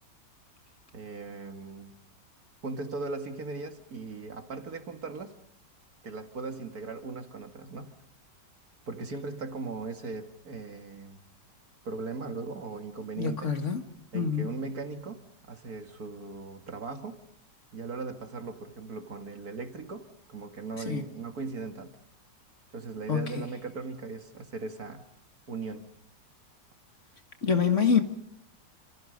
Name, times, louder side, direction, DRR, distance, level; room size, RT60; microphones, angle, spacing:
voice 1, 0.9-1.9 2.6-5.4 6.0-7.9 8.9-11.2 11.9-13.5 14.1-15.2 15.5-17.2 17.7-22.0 22.7-25.0 25.5-25.9, right 4 dB, 55° right, 2.5 m, -38 dB
voice 2, 13.2-13.8 14.1-14.5 20.9-21.0 23.1-23.4 27.4-28.0, left 6 dB, 45° left, 2.1 m, -26 dB
29.5 x 27.0 x 5.3 m
omnidirectional pair, 1.9 m